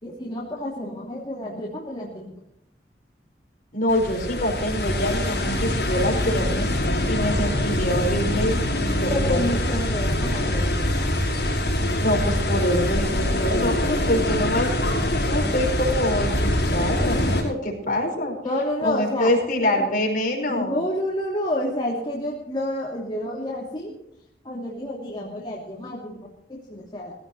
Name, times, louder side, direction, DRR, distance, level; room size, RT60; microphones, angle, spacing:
voice 1, 0.0-2.3 7.3-7.5 9.1-11.2 18.4-19.4 19.7-19.9 20.5-24.0 24.4-27.1, left 1 dB, 25° left, -5 dB, 2.9 m, -29 dB
voice 2, 3.7-9.4 12.0-18.4 18.8-20.8, left 1 dB, 50° left, 1 dB, 5.1 m, -25 dB
sound 1, 3.9-17.4, left 1 dB, 70° left, 5.8 m, -24 dB
18.5 x 16.0 x 3.1 m, 0.79 s
head